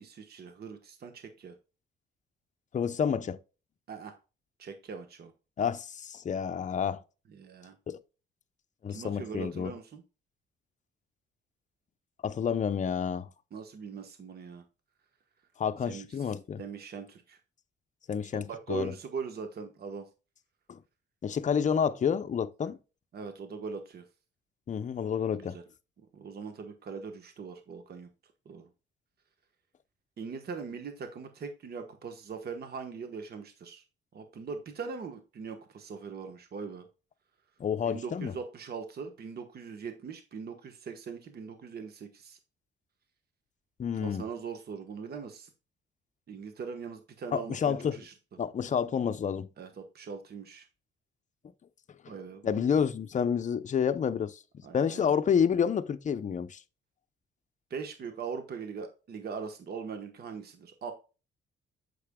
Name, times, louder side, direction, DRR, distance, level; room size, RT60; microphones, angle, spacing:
voice 1, 0.0-1.5 3.9-4.1 4.6-5.3 7.3-7.7 8.9-10.0 13.5-14.6 15.9-17.4 18.3-20.1 23.1-24.0 25.3-25.6 26.1-28.1 28.4-28.7 30.2-33.8 34.1-36.9 37.9-42.4 44.0-45.5 46.3-48.1 49.6-50.7 52.1-52.6 54.6-55.1 57.7-60.9, right 5 dB, 50° right, 1.2 m, -41 dB
voice 2, 2.7-3.4 5.6-7.0 7.9-8.0 8.8-9.7 12.2-13.3 15.6-16.6 18.1-18.9 20.7-20.8 21.2-22.8 24.7-25.6 37.6-38.3 43.8-44.2 47.3-48.0 48.4-49.5 52.4-54.4 54.7-56.6, left 7 dB, 40° left, 0.6 m, -29 dB
8.3 x 6.8 x 2.2 m
cardioid pair, 90°, 20 cm